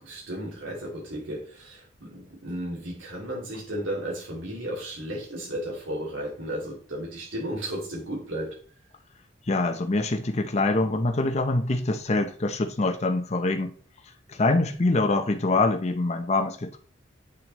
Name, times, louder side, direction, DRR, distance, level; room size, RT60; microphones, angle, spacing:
voice 1, 0.0-8.6, right 1 dB, 85° right, 2.5 m, -34 dB
voice 2, 9.5-13.7 14.3-16.8, left 2 dB, 35° left, 0.7 m, -24 dB
8.3 x 6.2 x 3.1 m
head